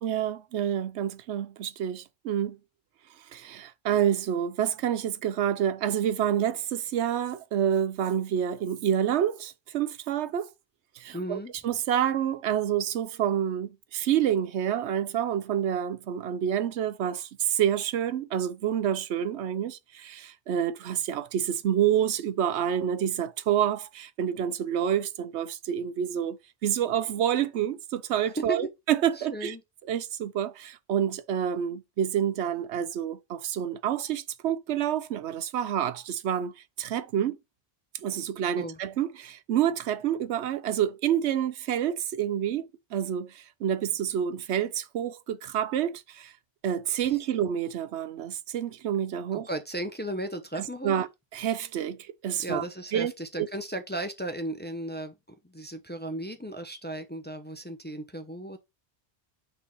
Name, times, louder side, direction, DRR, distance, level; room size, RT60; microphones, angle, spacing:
voice 1, 0.0-2.6 3.3-10.5 11.0-26.4 26.6-29.5 29.9-36.5 36.8-37.4 38.0-42.6 42.9-46.3 46.6-49.5 50.6-51.1 51.3-52.7 52.9-53.1 53.4-53.5, right 9 dB, 80° right, 0.9 m, -28 dB
voice 2, 11.1-11.5 28.4-28.7 29.2-29.6 38.6-38.8 47.0-47.2 49.3-51.0 52.4-55.1 55.4-58.6, right 1 dB, 10° left, 0.7 m, -35 dB
6.2 x 3.3 x 5.3 m
omnidirectional pair, 1.1 m